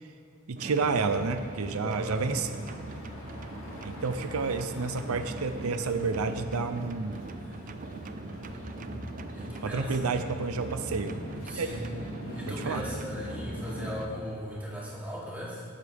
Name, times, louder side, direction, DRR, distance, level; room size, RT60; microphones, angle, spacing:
voice 1, 0.5-2.5 3.8-7.2 9.6-11.2 11.5-11.7 12.5-12.8, right 4 dB, 85° right, 9 dB, 0.6 m, -30 dB
sound 1, 0.6-14.1, left 1 dB, 70° left, 2.5 m, -42 dB
sound 2, 0.6-14.1, right 3 dB, 35° right, 0.4 m, -43 dB
voice 2, 1.8-2.2 8.5-8.7 9.3-10.1 11.4-11.9 12.3-15.6, equal, 5° right, -8 dB, 3.0 m, -38 dB
19.0 x 8.3 x 3.5 m, 2.7 s
head